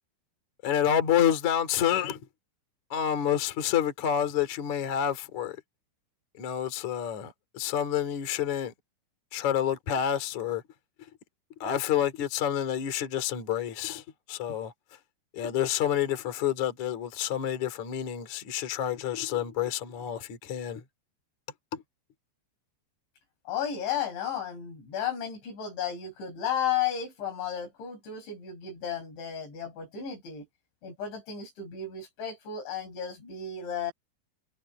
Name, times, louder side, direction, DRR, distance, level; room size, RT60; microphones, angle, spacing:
voice 1, 0.6-2.2 2.9-5.6 6.4-8.7 9.3-10.6 11.6-14.0 14.3-14.7 15.3-20.8 21.7-21.8, left 10 dB, 45° left, 3.4 m, -28 dB
voice 2, 23.5-30.5 30.8-33.9, left 8 dB, 70° left, 7.8 m, -33 dB
omnidirectional pair, 5.5 m